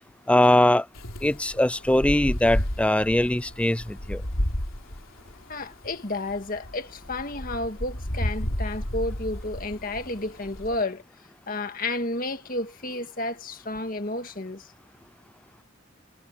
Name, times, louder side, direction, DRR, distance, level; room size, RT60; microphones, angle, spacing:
voice 1, 0.3-0.9 1.2-4.2, left 1 dB, 5° left, 0.4 m, -21 dB
Wind, 0.9-10.8, equal, 90° left, 3.5 m, -32 dB
voice 2, 5.5-11.0 11.5-14.7, left 2 dB, 45° left, 1.9 m, -31 dB
head